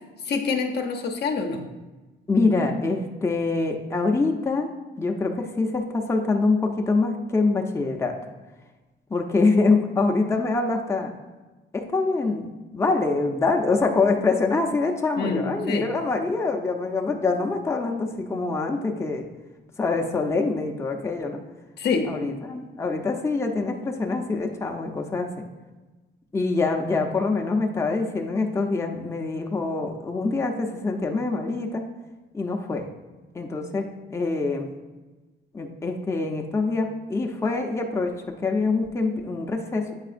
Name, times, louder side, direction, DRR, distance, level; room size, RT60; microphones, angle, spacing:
voice 1, 0.3-1.6 15.2-15.9 21.8-22.1, left 4 dB, 55° left, 3 dB, 0.7 m, -26 dB
voice 2, 2.3-4.7 5.0-8.1 9.1-11.1 11.7-19.3 19.8-21.4 22.1-25.3 26.3-31.8 32.3-32.9 33.3-34.7 35.5-38.1 38.4-39.9, left 3 dB, 15° left, 1 dB, 0.6 m, -25 dB
7.9 x 4.7 x 2.5 m, 1.2 s
cardioid pair, 90°, 20 cm